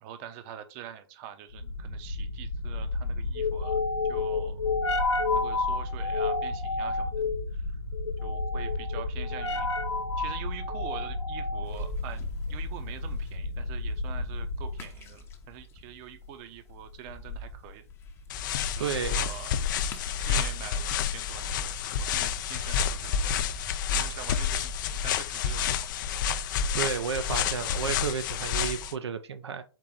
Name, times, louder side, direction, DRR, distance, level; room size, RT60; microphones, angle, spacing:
voice 1, 0.0-3.8 4.1-4.6 5.3-7.2 7.5-7.7 8.2-9.7 10.2-12.2 12.5-17.8 18.8-19.6 20.2-23.3 23.9-25.9, right 9 dB, 35° right, 0.7 m, -45 dB
sound 1, 1.6-14.9, left 3 dB, 85° left, 0.9 m, -30 dB
sound 2, 11.6-25.7, left 1 dB, 15° left, 0.7 m, -45 dB
sound 3, 18.3-28.9, left 7 dB, 50° left, 0.4 m, -29 dB
voice 2, 18.8-19.3 26.8-29.6, right 7 dB, 75° right, 0.5 m, -32 dB
4.5 x 3.0 x 3.7 m
hypercardioid pair, 125°, 14 cm